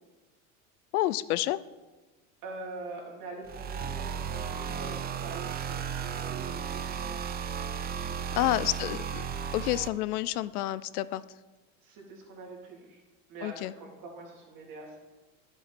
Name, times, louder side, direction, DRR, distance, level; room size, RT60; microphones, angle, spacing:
voice 1, 0.9-1.6 8.4-9.2 9.5-11.2 13.4-13.7, left 15 dB, 85° left, 17 dB, 0.5 m, -29 dB
voice 2, 2.4-7.1 7.9-8.5 11.8-13.0 13.3-15.0, right 3 dB, 50° right, -1 dB, 3.2 m, -44 dB
sound 1, 3.4-9.9, right 7 dB, 20° right, 0.5 m, -35 dB
10.5 x 7.5 x 4.2 m, 1.2 s
hypercardioid pair, 105°, 44 cm